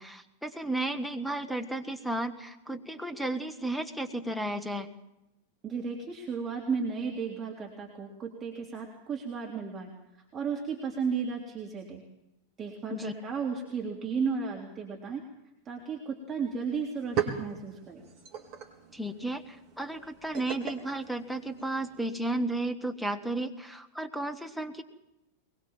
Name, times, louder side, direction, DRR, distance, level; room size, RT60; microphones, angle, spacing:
voice 1, 0.0-4.9 12.9-13.1 18.9-24.8, right 1 dB, ahead, 8 dB, 1.7 m, -33 dB
voice 2, 5.6-9.9 10.3-12.0 12.6-15.2 15.7-18.0, right 5 dB, 25° right, 0 dB, 3.6 m, -34 dB
sound 1, 16.4-16.5 16.8-22.0, right 8 dB, 40° right, 4.3 m, -38 dB
23.0 x 22.0 x 7.5 m, 0.93 s
figure-of-eight pair, 90°, 0 cm